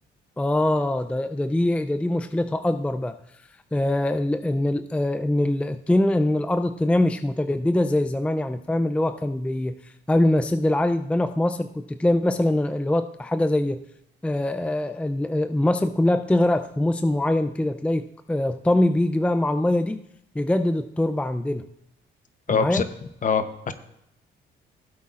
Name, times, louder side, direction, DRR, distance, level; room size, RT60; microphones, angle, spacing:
voice 1, 0.4-3.2 3.7-13.8 14.2-20.0 20.3-21.6 22.5-22.8, left 1 dB, 5° left, 9 dB, 0.4 m, -23 dB
voice 2, 22.5-22.8 23.2-23.7, left 5 dB, 40° left, 10 dB, 0.9 m, -23 dB
16.0 x 8.2 x 2.5 m, 0.78 s
cardioid pair, 90°, 20 cm